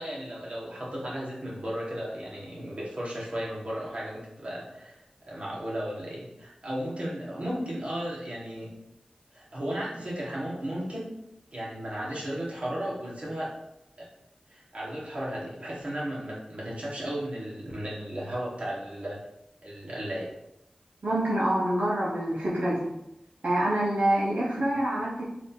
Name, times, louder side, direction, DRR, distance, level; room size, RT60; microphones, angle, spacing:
voice 1, 0.0-8.7 9.3-11.1 11.5-13.5 14.0-14.1 14.5-19.2 19.6-20.3, equal, 55° right, -6 dB, 1.5 m, -35 dB
voice 2, 21.0-22.9 23.4-25.2, right 1 dB, 80° right, -8 dB, 1.0 m, -26 dB
3.9 x 2.8 x 3.8 m, 0.84 s
wide cardioid pair, 45°, 2 cm